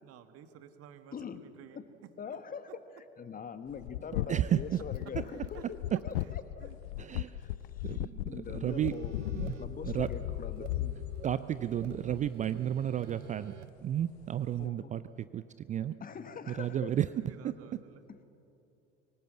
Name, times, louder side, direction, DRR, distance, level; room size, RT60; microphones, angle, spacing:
voice 1, 0.0-1.8 2.7-2.8 5.2-5.6 6.2-7.2 7.5-7.6 11.4-11.6 15.6-15.8 16.1-16.4 16.8-18.0, right 9 dB, 40° right, 10 dB, 1.6 m, -55 dB
voice 2, 1.1-1.5 1.7-1.8 2.2-5.8 6.0-6.7 7.4-7.5 7.8-9.2 9.4-11.0 14.6-14.9 16.0-16.9 18.1-18.2, left 6 dB, 25° left, 11 dB, 1.4 m, -43 dB
sound 1, 3.7-12.6 14.0-14.3 14.6-14.7, left 16 dB, 60° left, 0.6 m, -37 dB
voice 3, 4.3-4.8 7.0-7.3 7.8-8.9 9.3-9.6 9.8-10.1 11.2-13.5 13.8-15.0 15.3-15.9 16.5-17.1 17.4-17.5, right 10 dB, 20° right, 15 dB, 0.4 m, -32 dB
sound 2, 8.7-13.7, right 10 dB, 85° right, 0.5 m, -48 dB
24.0 x 18.5 x 7.7 m, 2.8 s
figure-of-eight pair, 70°, 36 cm